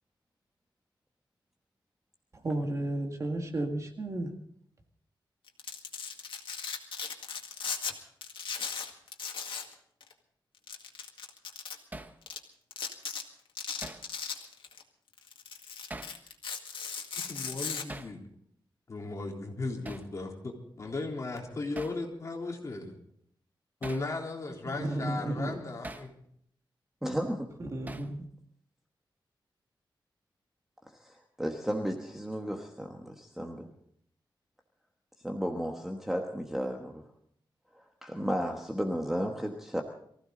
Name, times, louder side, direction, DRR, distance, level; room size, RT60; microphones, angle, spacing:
voice 1, 2.4-4.3 24.7-25.6 27.6-28.2, right 1 dB, 35° right, 4 dB, 2.0 m, -33 dB
Domestic sounds home sounds, 5.5-7.9 8.2-9.7 10.0-10.1 10.7-11.7 12.3-12.4 12.7-13.2 13.6-14.8 15.2-17.8, left 6 dB, 90° left, 1.9 m, -37 dB
Hammer, 11.9-12.2 13.8-14.1 15.9-16.2 17.9-18.2 19.8-20.1 21.8-22.0 23.8-24.1 25.8-26.1 27.9-28.2, right 2 dB, 20° right, 1.0 m, -42 dB
voice 2, 17.3-18.2 18.9-23.0 23.8-26.1, left 3 dB, 40° left, 0 dB, 3.5 m, -36 dB
voice 3, 27.0-27.5 31.0-33.7 35.2-37.0 38.0-39.8, equal, 5° right, 2 dB, 1.4 m, -33 dB
23.5 x 15.5 x 3.9 m, 0.66 s
wide cardioid pair, 150°, 8 cm